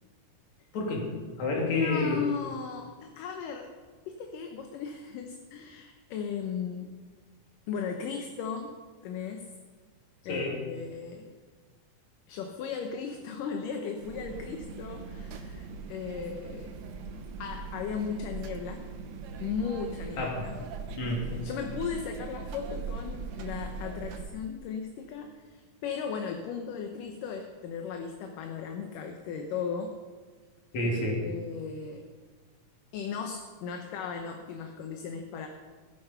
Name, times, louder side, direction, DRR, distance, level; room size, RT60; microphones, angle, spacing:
voice 1, 0.7-1.1 1.4-2.2 10.3-10.6 20.2-20.4 21.0-21.3 30.7-31.3, left 2 dB, 55° left, -1 dB, 3.8 m, -29 dB
voice 2, 1.7-3.7 4.1-6.9 7.7-8.8 9.0-9.5 10.3-11.3 12.3-16.7 17.4-18.9 19.4-20.5 21.3-30.0 31.0-32.0 32.9-35.5, left 6 dB, 75° left, 4 dB, 2.5 m, -36 dB
sound 1, 14.0-24.3, right 4 dB, 65° right, 2.0 m, -40 dB
17.0 x 10.5 x 5.7 m, 1.5 s
omnidirectional pair, 3.9 m